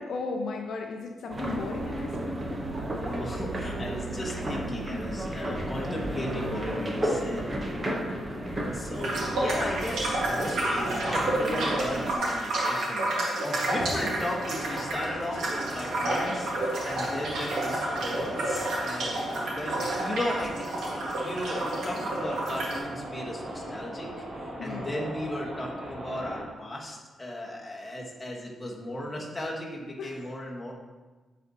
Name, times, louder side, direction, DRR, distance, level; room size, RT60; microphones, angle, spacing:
voice 1, 0.0-2.6 8.4-8.7 13.4-13.7 24.6-25.0 30.0-30.2, left 3 dB, 65° left, 2 dB, 0.6 m, -36 dB
sound 1, 1.3-12.1, right 1 dB, 25° right, 0.8 m, -33 dB
voice 2, 3.0-7.5 8.7-13.1 13.4-16.5 16.8-20.7 21.2-30.7, left 1 dB, 15° left, -3 dB, 1.2 m, -36 dB
sound 2, 9.0-22.8, right 1 dB, 85° right, 1.5 m, -30 dB
sound 3, 13.7-26.4, right 1 dB, 55° right, 1.7 m, -38 dB
9.4 x 4.1 x 2.8 m, 1.3 s
cardioid pair, 135°, 0 cm